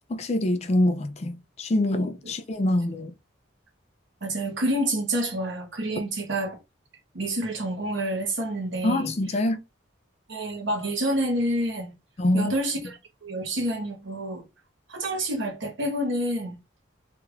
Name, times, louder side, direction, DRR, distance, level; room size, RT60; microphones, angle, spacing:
voice 1, 0.1-3.1 8.8-9.6 12.2-12.5, left 1 dB, 30° left, 0.4 m, -25 dB
voice 2, 4.2-6.6 7.1-9.1 10.3-11.9 12.3-14.4 14.9-16.6, right 1 dB, 65° right, 1.1 m, -28 dB
3.3 x 2.4 x 3.3 m
head